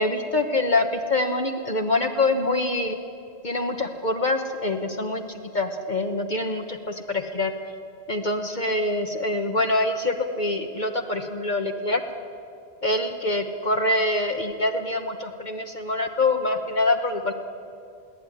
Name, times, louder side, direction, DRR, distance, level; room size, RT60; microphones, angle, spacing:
voice 1, 0.0-3.0 3.4-7.5 8.1-12.0 12.8-17.3, left 2 dB, 50° left, 4 dB, 1.3 m, -25 dB
22.5 x 17.0 x 9.9 m, 2.4 s
omnidirectional pair, 1.0 m